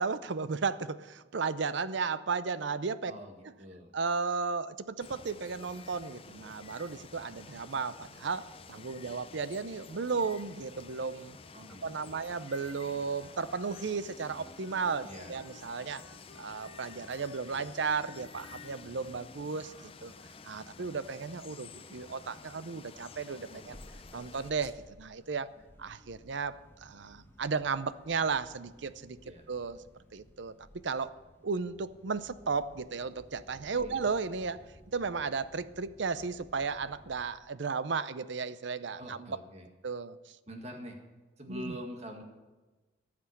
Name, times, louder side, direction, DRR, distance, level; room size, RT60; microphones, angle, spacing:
voice 1, 0.0-3.1 3.9-11.4 11.8-16.0 16.4-20.1 20.4-23.8 24.1-25.5 25.8-29.8 30.1-30.6 30.8-31.1 31.4-34.6 34.9-39.4 39.8-40.4 41.5-41.8, right 5 dB, 65° right, 15 dB, 0.6 m, -34 dB
voice 2, 3.0-3.9 11.5-12.3 15.0-15.4 23.4-23.6 29.2-29.5 33.8-34.0 39.0-39.7 40.5-41.0 41.4-42.2, equal, 35° right, 3 dB, 1.9 m, -45 dB
Water, 5.0-24.5, left 4 dB, 30° left, 0.5 m, -51 dB
Wind instrument woodwind instrument, 12.2-21.3, left 4 dB, 80° left, 4.1 m, -58 dB
sound 1, 23.5-37.3, equal, 10° left, 1.0 m, -57 dB
14.0 x 6.1 x 9.9 m, 1.2 s
head